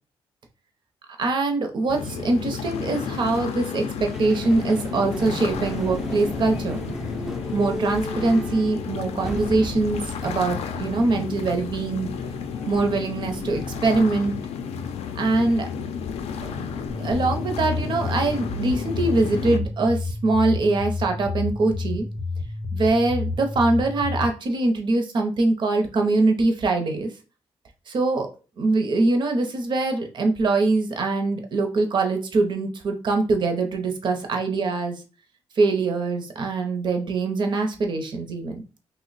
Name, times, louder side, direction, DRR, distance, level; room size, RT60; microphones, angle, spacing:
voice 1, 1.2-6.8 7.5-12.1 12.7-14.3 15.2-15.7 17.0-22.0 22.7-27.1 27.9-28.3 28.6-35.0 35.6-38.6, right 3 dB, 45° right, 4 dB, 0.6 m, -23 dB
sound 1, 1.9-19.6, left 6 dB, 85° left, 0.4 m, -32 dB
sound 2, 4.1-14.2, right 1 dB, 5° right, 0.3 m, -37 dB
sound 3, 16.9-24.3, left 3 dB, 40° left, 0.6 m, -30 dB
2.9 x 2.1 x 3.9 m, 0.34 s
wide cardioid pair, 165°, 10 cm